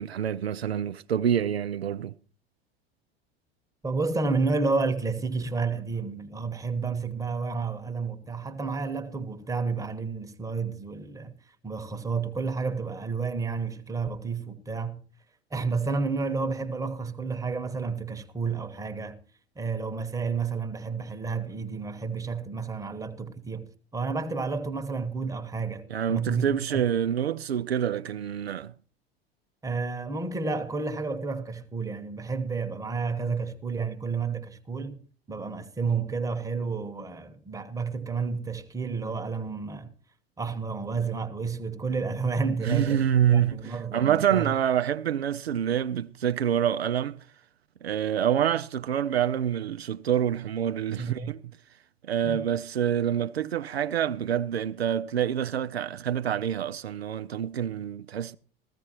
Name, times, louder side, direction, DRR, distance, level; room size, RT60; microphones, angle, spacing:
voice 1, 0.0-2.1 25.9-28.7 42.6-47.2 47.8-51.4 52.0-58.3, right 9 dB, 85° right, 0.5 m, -27 dB
voice 2, 3.8-11.3 11.6-15.0 15.5-19.2 19.6-26.8 29.6-35.0 35.3-39.9 40.4-44.5 51.0-51.3 52.2-52.4, right 4 dB, 10° right, 1.1 m, -31 dB
15.0 x 14.0 x 2.9 m
figure-of-eight pair, 75°, 31 cm